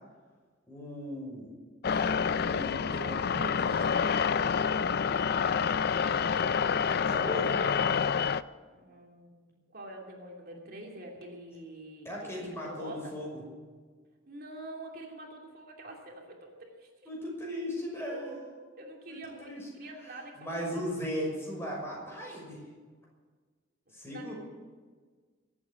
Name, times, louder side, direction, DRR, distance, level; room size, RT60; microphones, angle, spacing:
voice 1, 0.7-1.5 1.9-4.0 7.1-7.7 12.0-13.3 17.1-18.3 19.1-19.6 20.4-22.6 23.9-24.3, equal, 15° left, -3 dB, 6.0 m, -37 dB
sound 1, 1.8-8.4, left 6 dB, 50° left, 0.4 m, -28 dB
voice 2, 5.5-7.0 8.7-13.1 14.3-16.9 18.1-20.8 24.0-24.3, right 1 dB, 50° right, 0 dB, 2.8 m, -46 dB
23.0 x 8.8 x 7.1 m, 1.5 s
head